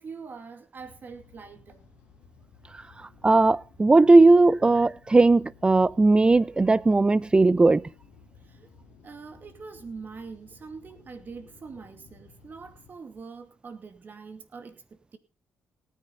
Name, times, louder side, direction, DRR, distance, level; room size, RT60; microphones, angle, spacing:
voice 1, 0.0-1.8 8.4-8.7 9.0-15.2, right 5 dB, 45° right, 2.5 m, -43 dB
sound 1, 0.8-12.9, left 5 dB, 90° left, 3.1 m, -55 dB
voice 2, 3.2-7.8, right 3 dB, 20° right, 0.6 m, -18 dB
18.0 x 10.0 x 4.0 m
cardioid pair, 75°, 5 cm